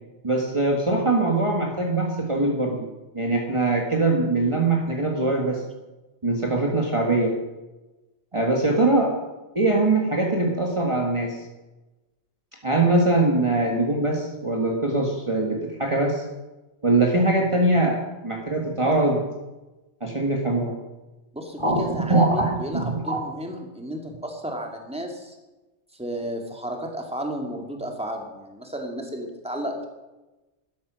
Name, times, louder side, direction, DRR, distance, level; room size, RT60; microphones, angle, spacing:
voice 1, 0.2-2.8 3.1-5.6 6.2-7.3 8.3-9.1 9.5-11.4 12.6-16.2 16.8-19.2 20.0-20.7 21.6-23.2, right 2 dB, 25° right, -1 dB, 1.8 m, -22 dB
voice 2, 21.3-25.4 25.9-29.8, equal, 5° right, 2 dB, 2.2 m, -33 dB
12.5 x 12.5 x 6.3 m, 1.1 s
omnidirectional pair, 1.2 m